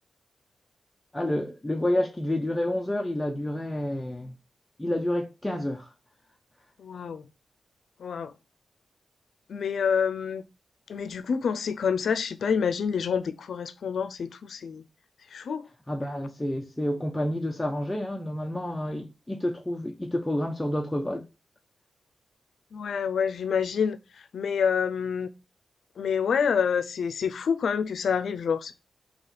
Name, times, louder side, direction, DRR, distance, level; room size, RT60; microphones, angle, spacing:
voice 1, 1.1-4.3 4.8-5.9 15.9-21.2, left 1 dB, 10° left, 0.4 m, -29 dB
voice 2, 6.8-7.2 8.0-8.3 9.5-10.4 10.9-14.8 15.3-15.7 22.7-24.0 24.3-25.3 26.0-28.7, left 6 dB, 70° left, 0.4 m, -27 dB
4.1 x 2.8 x 4.1 m
wide cardioid pair, 150°, 0 cm